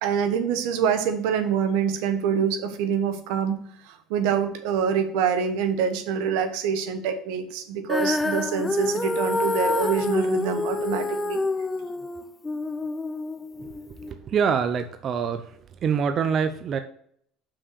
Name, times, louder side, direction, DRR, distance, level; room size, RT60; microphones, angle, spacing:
voice 1, 0.0-3.6 3.8-11.4, right 7 dB, 80° right, 8 dB, 1.1 m, -25 dB
Female singing, 7.9-14.1, left 3 dB, 15° left, 0.5 m, -27 dB
voice 2, 13.6-15.5 15.8-16.8, right 6 dB, 40° right, 9 dB, 0.6 m, -25 dB
6.0 x 4.9 x 6.5 m, 0.65 s
supercardioid pair, 110°, 0 cm